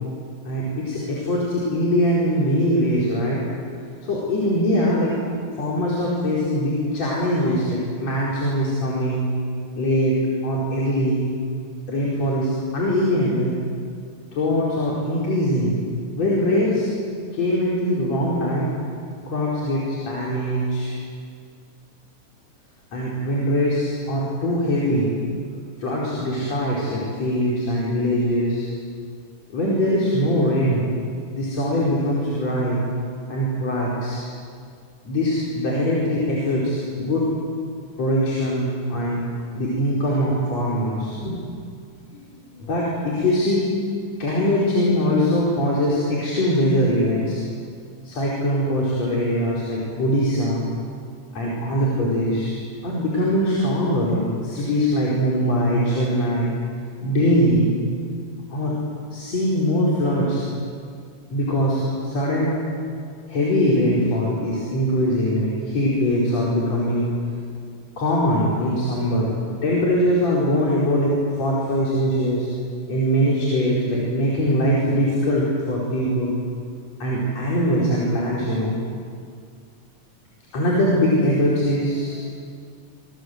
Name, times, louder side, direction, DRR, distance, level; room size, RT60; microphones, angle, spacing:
voice 1, 0.5-3.5 4.0-5.1 5.6-9.3 9.8-10.2 10.4-11.2 11.9-13.5 14.3-15.7 16.1-16.9 17.3-18.7 19.3-21.0 22.9-25.1 25.8-28.7 29.5-30.8 31.3-32.8 33.3-34.2 35.1-37.3 38.0-39.3 39.5-41.3 42.1-42.2 42.5-43.7 44.2-47.4 48.0-50.7 51.3-52.6 52.8-56.5 57.0-57.7 58.5-58.7 59.1-60.4 61.3-62.6 63.3-67.1 68.0-69.3 69.6-72.5 72.9-76.4 77.0-78.8 80.5-82.2, equal, 55° left, -5 dB, 5.8 m, -22 dB
26.5 x 26.0 x 8.0 m, 2.2 s
omnidirectional pair, 3.5 m